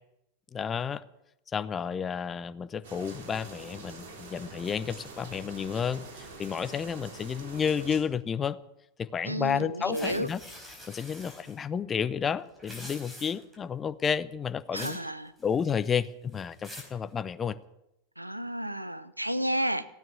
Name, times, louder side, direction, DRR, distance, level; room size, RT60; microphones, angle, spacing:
voice 1, 0.5-1.0 1.5-8.6 9.0-10.4 10.9-15.0 15.4-17.6, left 7 dB, 20° left, 13 dB, 0.7 m, -31 dB
sound 1, 2.8-8.0, right 3 dB, 55° right, 3.5 m, -45 dB
voice 2, 9.2-10.3 14.7-15.3 18.2-19.9, right 1 dB, 85° right, 13 dB, 0.8 m, -31 dB
sound 2, 9.9-11.6 12.5-13.6 14.8-15.1 15.4-15.9 16.3-17.0, equal, 10° right, 4.7 m, -45 dB
16.0 x 9.2 x 9.6 m, 0.84 s
figure-of-eight pair, 90°, 0 cm